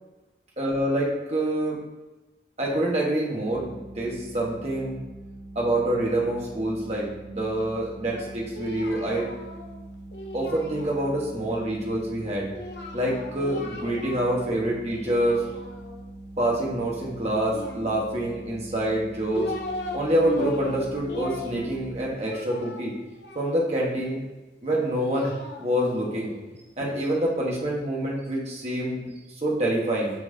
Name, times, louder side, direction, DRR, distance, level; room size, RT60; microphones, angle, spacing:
voice 1, 0.6-1.8 2.6-5.0 5.5-9.3 10.3-12.5 12.9-15.4 16.4-19.5 19.9-22.9 23.3-24.2 24.6-26.3 26.8-29.1 29.4-30.1, right 1 dB, 35° right, -3 dB, 1.3 m, -26 dB
sound 1, 3.5-22.1, right 1 dB, 80° right, 1.8 m, -43 dB
Singing, 8.1-11.4 12.5-14.5 14.8-16.1 17.5-18.4 19.0-20.0 20.2-23.9 24.7-26.9, left 2 dB, 65° left, 0.8 m, -38 dB
7.2 x 5.7 x 2.8 m, 1.1 s
head